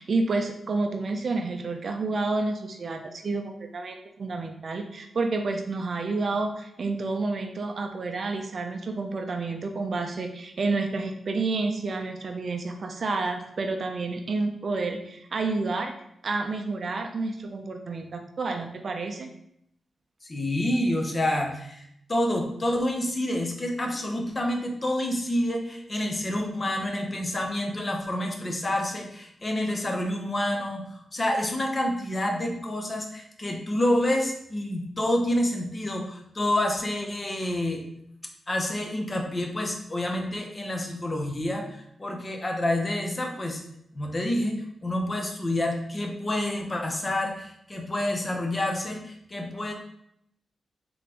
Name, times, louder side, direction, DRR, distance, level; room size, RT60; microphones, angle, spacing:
voice 1, 0.0-15.9 16.2-19.3, right 3 dB, 50° right, 5 dB, 0.4 m, -29 dB
voice 2, 20.2-37.8 38.5-43.6 43.9-49.7, left 1 dB, 25° left, 2 dB, 0.7 m, -28 dB
3.8 x 3.6 x 2.9 m, 0.74 s
wide cardioid pair, 120°, 0 cm